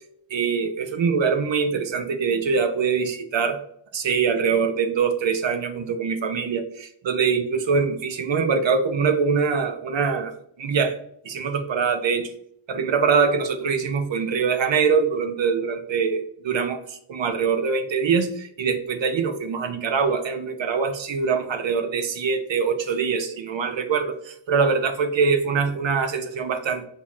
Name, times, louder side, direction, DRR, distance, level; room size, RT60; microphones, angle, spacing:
voice 1, 0.3-3.6 3.9-10.3 10.6-11.0 11.2-12.3 12.7-26.9, right 5 dB, 75° right, 7 dB, 0.6 m, -23 dB
5.9 x 2.8 x 2.4 m, 0.70 s
wide cardioid pair, 90°, 45 cm